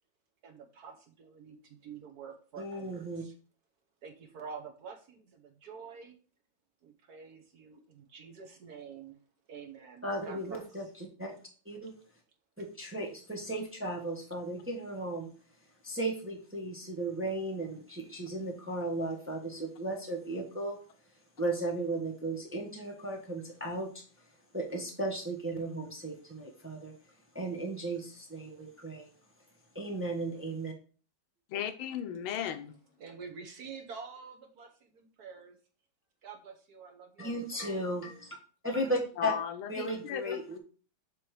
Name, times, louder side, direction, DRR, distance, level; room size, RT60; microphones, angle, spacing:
voice 1, 0.4-3.3 4.0-6.2 6.8-9.2 9.5-10.6 33.0-35.6 36.2-37.4 37.7-37.8, right 5 dB, 60° right, 1.2 m, -47 dB
voice 2, 2.6-3.2 10.0-11.4 11.6-11.9 12.6-15.3 15.8-20.8 21.4-24.0 24.5-26.9 27.3-29.1 29.7-30.7 37.2-38.4 38.6-39.3 39.7-40.6, right 1 dB, 10° right, 0.7 m, -35 dB
voice 3, 31.5-32.8 39.2-40.4, left 9 dB, 90° left, 1.6 m, -36 dB
7.2 x 3.1 x 4.8 m
omnidirectional pair, 2.2 m